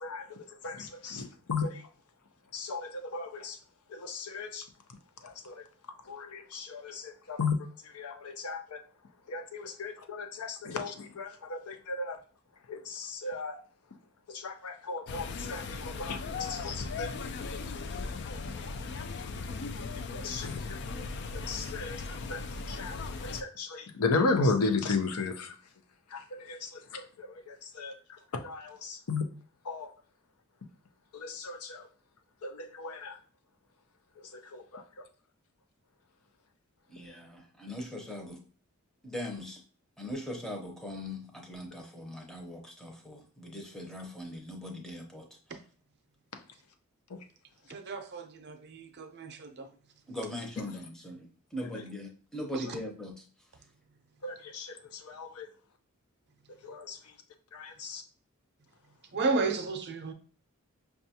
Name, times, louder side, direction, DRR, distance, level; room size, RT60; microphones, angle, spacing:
voice 1, 0.0-0.4 0.6-1.8 2.5-3.6 3.9-4.6 5.2-5.6 6.1-7.5 7.9-8.8 9.3-12.2 12.7-13.6 14.3-17.1 20.1-20.8 21.3-22.0 22.3-22.4 22.7-23.0 23.2-25.5 26.1-27.9 28.3-29.2 29.7-29.9 31.1-31.8 32.4-33.2 34.3-34.8 54.2-54.8 55.0-55.5 56.6-57.0 57.5-58.0, left 3 dB, 85° left, 0.6 m, -35 dB
sound 1, 15.1-23.4, left 4 dB, 50° left, 0.3 m, -38 dB
voice 2, 36.9-38.4 39.0-39.6 40.0-45.3 50.1-53.2, left 1 dB, 5° left, 0.7 m, -40 dB
voice 3, 47.7-49.7 59.1-60.1, right 3 dB, 50° right, 0.6 m, -33 dB
5.5 x 2.3 x 2.7 m
head